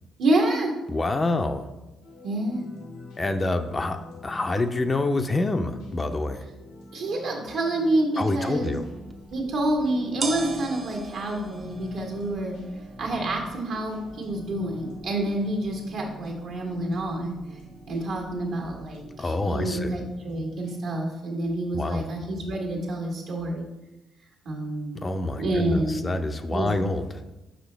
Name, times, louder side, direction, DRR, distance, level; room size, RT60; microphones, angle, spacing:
voice 1, 0.2-0.7 2.2-2.7 6.9-8.7 9.3-12.6 13.0-17.4 17.9-23.7 24.4-25.0 25.4-26.0 26.5-26.8, right 1 dB, 70° right, -1 dB, 1.5 m, -28 dB
voice 2, 0.9-1.7 3.2-6.5 8.2-8.9 19.2-20.0 21.7-22.0 25.0-27.1, left 2 dB, 30° left, 7 dB, 0.5 m, -27 dB
sound 1, 2.0-20.9, left 1 dB, 85° left, 1.2 m, -45 dB
sound 2, 9.1-19.1, right 3 dB, 40° right, 0.7 m, -42 dB
5.6 x 5.2 x 3.3 m, 1.0 s
hypercardioid pair, 45°, 0 cm